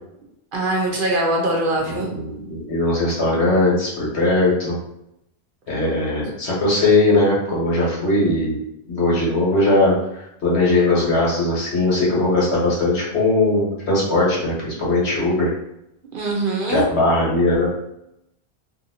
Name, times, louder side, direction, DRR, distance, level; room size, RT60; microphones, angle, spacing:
voice 1, 0.5-2.1 16.1-16.8, right 2 dB, 60° right, -1 dB, 0.7 m, -22 dB
voice 2, 2.1-4.8 5.7-8.6 8.9-15.5 16.7-17.7, left 2 dB, 75° left, -5 dB, 1.3 m, -19 dB
2.7 x 2.6 x 2.7 m, 0.83 s
omnidirectional pair, 1.1 m